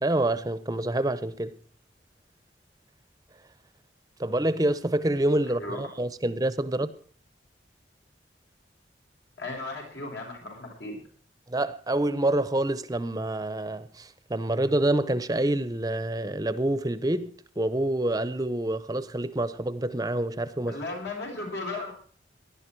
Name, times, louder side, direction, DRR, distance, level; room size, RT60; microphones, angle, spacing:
voice 1, 0.0-1.6 4.2-6.9 11.5-20.8, right 1 dB, 20° right, 0.6 m, -27 dB
voice 2, 5.6-5.9 9.4-11.0 20.7-21.9, left 2 dB, 80° left, 6.5 m, -35 dB
19.0 x 11.5 x 4.5 m
head